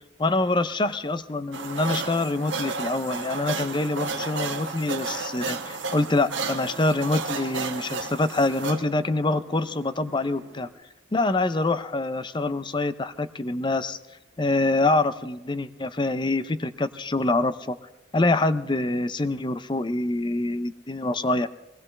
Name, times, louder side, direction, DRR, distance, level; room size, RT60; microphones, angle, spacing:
voice 1, 0.2-10.7 11.1-14.0 14.4-17.8 18.1-21.5, left 2 dB, 25° left, 13 dB, 0.5 m, -25 dB
sound 1, 1.5-10.7, right 4 dB, 85° right, 1.2 m, -33 dB
21.0 x 18.0 x 3.2 m, 0.98 s
head